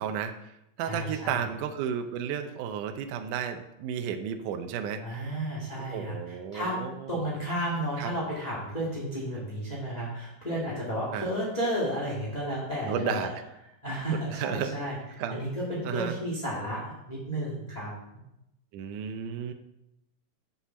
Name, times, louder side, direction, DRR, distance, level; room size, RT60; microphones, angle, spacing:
voice 1, 0.0-5.2 5.8-7.2 8.0-8.1 11.1-11.3 12.9-13.3 14.3-14.8 15.2-15.4 15.8-16.2 18.7-19.5, right 8 dB, 80° right, 7 dB, 1.9 m, -33 dB
voice 2, 0.8-1.4 5.0-6.8 7.1-13.3 13.8-14.9 15.3-17.9, equal, 15° left, -5 dB, 1.3 m, -32 dB
7.3 x 7.0 x 7.0 m, 0.86 s
omnidirectional pair, 4.3 m